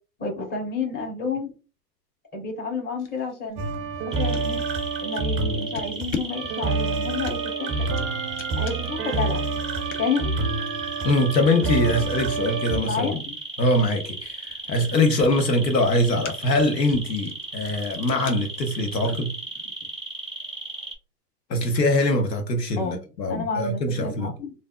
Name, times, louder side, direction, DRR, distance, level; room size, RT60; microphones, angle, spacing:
voice 1, 0.2-1.5 2.3-3.6 4.0-4.6 5.0-7.7 8.5-9.4 10.0-10.3 12.8-13.3 22.8-23.0 23.3-24.5, left 4 dB, 20° left, 1.4 m, -30 dB
sound 1, 3.0-4.5 5.1-5.4 5.7-19.7, left 5 dB, 50° left, 0.8 m, -41 dB
sound 2, 3.6-12.8, right 4 dB, 25° right, 0.5 m, -28 dB
sound 3, 4.1-20.9, right 2 dB, ahead, 1.1 m, -35 dB
voice 2, 11.0-13.2 13.6-19.4 21.5-24.3, left 1 dB, 85° left, 1.0 m, -23 dB
3.2 x 2.6 x 2.4 m
hypercardioid pair, 100°, 48 cm